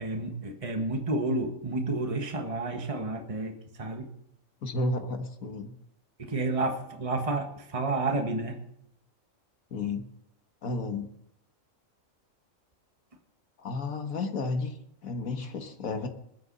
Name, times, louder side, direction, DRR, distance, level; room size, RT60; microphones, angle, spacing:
voice 1, 0.0-4.1 6.2-8.6, right 2 dB, 25° right, 3 dB, 1.6 m, -30 dB
voice 2, 4.6-5.7 9.7-10.1 10.6-11.1 13.6-14.7 15.0-16.1, left 3 dB, 80° left, 6 dB, 1.8 m, -32 dB
20.5 x 9.4 x 4.1 m, 0.77 s
omnidirectional pair, 1.4 m